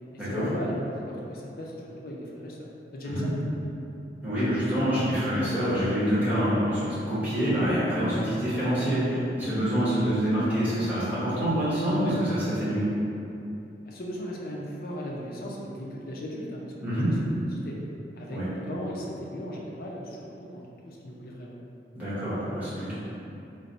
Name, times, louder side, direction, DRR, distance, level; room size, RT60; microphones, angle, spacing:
voice 1, 0.1-3.8 13.8-16.7 17.2-17.4 17.6-17.8 18.2-21.6, equal, 55° left, -3 dB, 0.5 m, -37 dB
voice 2, 4.2-12.8 16.8-17.1 18.3-18.5 21.9-22.9, equal, 10° right, -12 dB, 1.0 m, -26 dB
3.1 x 2.0 x 4.0 m, 2.8 s
head